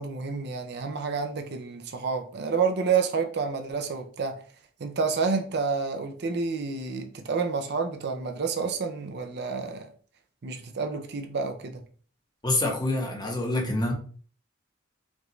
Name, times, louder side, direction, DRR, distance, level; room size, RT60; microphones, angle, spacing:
voice 1, 0.0-4.3 4.8-9.9 10.4-11.8, right 5 dB, 55° right, 0.5 m, -29 dB
voice 2, 12.4-13.9, left 2 dB, 20° left, 1.0 m, -26 dB
5.2 x 2.5 x 3.1 m
head